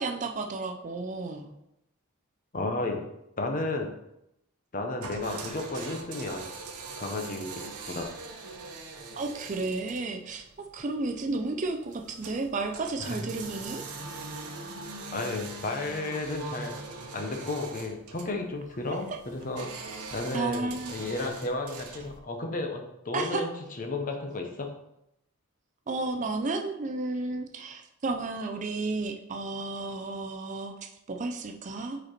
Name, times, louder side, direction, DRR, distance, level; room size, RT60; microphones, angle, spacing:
voice 1, 0.0-1.5 9.2-13.8 20.0-20.9 23.1-23.4 25.9-30.7 31.1-32.0, right 3 dB, 35° right, 4 dB, 0.4 m, -32 dB
voice 2, 2.5-3.0 3.4-3.9 4.7-6.4 7.0-7.6 7.9-8.1 13.0-13.2 15.1-16.8 17.1-19.7 20.1-23.5 23.8-24.7, left 2 dB, 35° left, 3 dB, 0.7 m, -33 dB
sound 1, 5.0-22.2, right 3 dB, 85° right, 0.8 m, -42 dB
5.3 x 4.3 x 4.3 m, 0.83 s
head